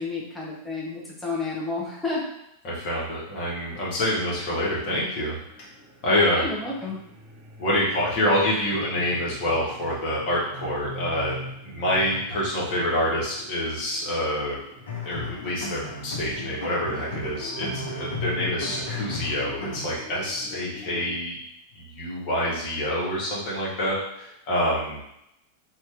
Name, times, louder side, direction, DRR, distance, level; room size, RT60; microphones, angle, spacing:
voice 1, 0.0-2.2 6.1-7.0, left 3 dB, 5° left, -5 dB, 0.9 m, -31 dB
voice 2, 2.6-5.4 6.0-6.5 7.6-14.6 15.0-21.4 21.7-25.0, left 1 dB, 45° left, -5 dB, 1.2 m, -26 dB
sound 1, 4.3-21.2, right 1 dB, 35° right, 0.9 m, -43 dB
sound 2, 14.8-19.8, left 3 dB, 65° left, 0.7 m, -35 dB
2.9 x 2.4 x 3.3 m, 0.80 s
figure-of-eight pair, 90°, 0 cm